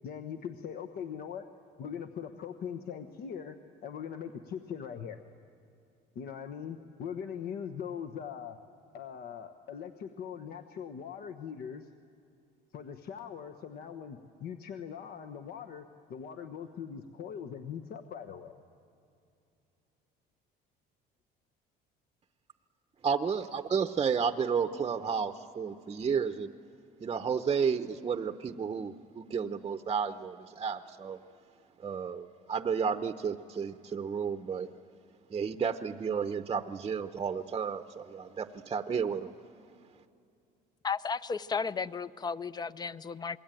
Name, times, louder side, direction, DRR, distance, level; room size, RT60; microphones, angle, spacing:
voice 1, 0.0-1.4 1.8-3.6 3.8-5.2 6.1-8.6 8.9-11.9 12.7-18.6, left 7 dB, 60° left, 7 dB, 1.2 m, -41 dB
voice 2, 23.0-26.5 27.0-31.2 31.8-34.7 35.3-39.3, right 6 dB, 25° right, 8 dB, 0.8 m, -32 dB
voice 3, 40.8-43.4, left 5 dB, 25° left, 16 dB, 0.6 m, -34 dB
27.5 x 21.5 x 9.1 m, 2.6 s
cardioid pair, 120°, 18 cm